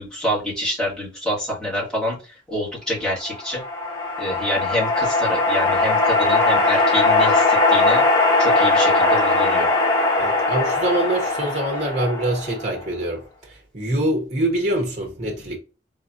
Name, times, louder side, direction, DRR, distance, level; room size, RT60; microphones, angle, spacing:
voice 1, 0.0-3.6 4.2-8.0 8.4-9.7, equal, 5° left, 2.3 m, -27 dB
sound 1, 3.2-12.8, left 2 dB, 20° left, 0.9 m, -19 dB
voice 2, 10.2-15.6, right 1 dB, 40° right, 1.0 m, -25 dB
3.8 x 3.5 x 2.7 m
head